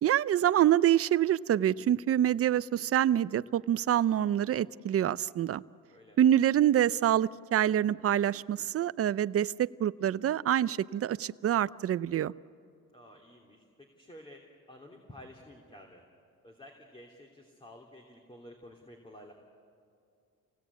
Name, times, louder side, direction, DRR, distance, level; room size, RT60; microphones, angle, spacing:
voice 1, 0.0-5.6 6.2-12.3, right 11 dB, 45° right, 17 dB, 0.6 m, -26 dB
voice 2, 12.9-16.0 16.4-19.3, left 1 dB, 15° left, 0 dB, 3.0 m, -52 dB
28.5 x 17.5 x 8.3 m, 2.4 s
cardioid pair, 75°, 32 cm